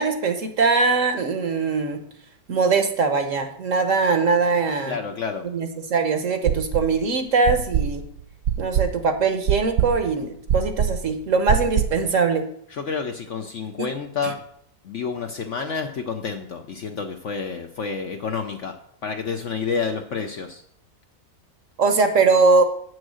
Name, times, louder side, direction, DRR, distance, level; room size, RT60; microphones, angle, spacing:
voice 1, 0.0-2.0 2.5-5.0 5.5-8.0 8.6-12.5 21.8-22.6, right 4 dB, 55° right, 7 dB, 1.1 m, -21 dB
voice 2, 4.9-5.5 12.7-14.4 14.8-20.6, left 5 dB, 60° left, 5 dB, 0.8 m, -29 dB
sound 1, 6.5-7.0 7.5-12.1, right 9 dB, 75° right, 0.6 m, -24 dB
8.5 x 6.3 x 6.3 m, 0.69 s
omnidirectional pair, 1.8 m